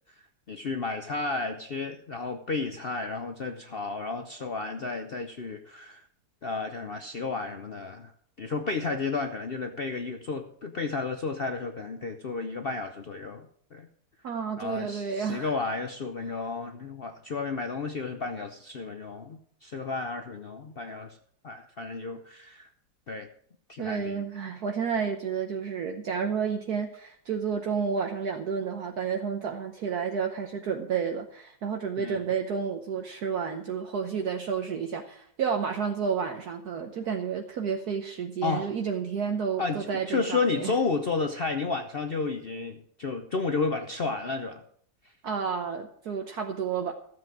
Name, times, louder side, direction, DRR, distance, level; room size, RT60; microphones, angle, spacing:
voice 1, 0.5-6.1 6.4-8.1 8.4-13.5 13.7-13.9 14.6-21.2 21.4-22.7 23.1-23.3 23.7-24.2 32.0-32.2 38.4-38.7 39.6-44.6, left 4 dB, 60° left, 6 dB, 0.6 m, -32 dB
voice 2, 14.2-15.6 23.8-40.7 45.2-46.9, right 6 dB, 60° right, 4 dB, 1.4 m, -31 dB
13.0 x 7.7 x 6.1 m, 0.62 s
omnidirectional pair, 2.0 m